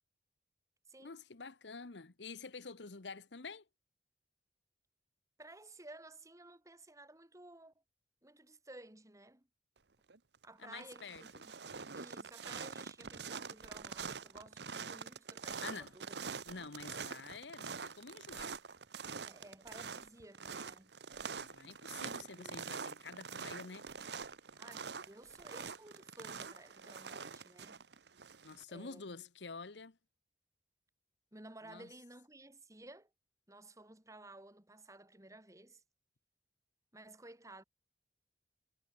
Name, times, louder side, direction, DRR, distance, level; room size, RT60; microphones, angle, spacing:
voice 1, 1.0-3.6 10.6-11.2 15.6-15.9 16.4-18.5 21.3-23.9 28.4-30.0 31.6-31.9, left 4 dB, 90° left, 1.2 m, -48 dB
voice 2, 5.4-7.7 8.2-9.5 10.4-11.5 11.9-16.2 19.2-20.9 22.3-22.6 24.5-27.8 28.7-29.0 31.3-33.1 33.5-35.8 36.9-37.6, right 2 dB, 20° right, 3.2 m, -55 dB
sound 1, 10.1-10.4 10.8-28.6, right 5 dB, 70° right, 1.2 m, -45 dB
head